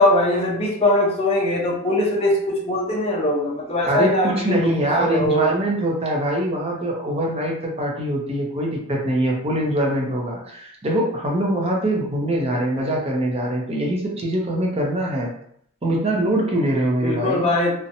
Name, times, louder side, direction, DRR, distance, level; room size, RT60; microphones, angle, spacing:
voice 1, 0.0-4.6 5.0-5.5 17.0-17.7, left 1 dB, 25° left, -2 dB, 0.5 m, -21 dB
voice 2, 3.8-15.3 15.8-17.5, right 1 dB, 25° right, -1 dB, 0.6 m, -23 dB
2.5 x 2.1 x 2.8 m, 0.66 s
head